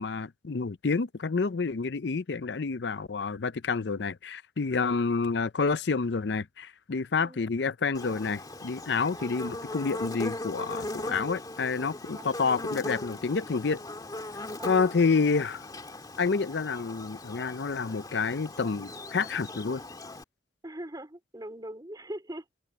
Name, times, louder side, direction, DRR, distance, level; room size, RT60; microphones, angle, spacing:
voice 1, 0.0-13.8 14.6-15.6 16.2-19.8, left 4 dB, 65° left, 0.6 m, -29 dB
Buzz, 7.9-20.2, left 2 dB, 20° left, 2.2 m, -39 dB
voice 2, 9.2-9.8 12.1-12.4 14.6-14.8 20.6-22.5, right 1 dB, 20° right, 3.8 m, -42 dB
head